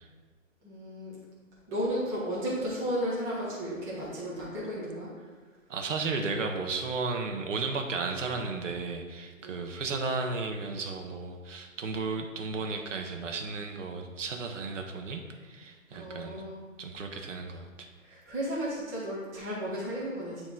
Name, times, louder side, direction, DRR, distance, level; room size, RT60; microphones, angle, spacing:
voice 1, 0.6-1.2 1.7-5.1 9.4-9.6 15.9-16.6 18.0-20.5, equal, 5° right, -8 dB, 0.6 m, -34 dB
voice 2, 5.7-16.4 16.8-17.9, right 4 dB, 60° right, 4 dB, 0.9 m, -34 dB
8.8 x 3.0 x 3.9 m, 1.5 s
hypercardioid pair, 145°, 41 cm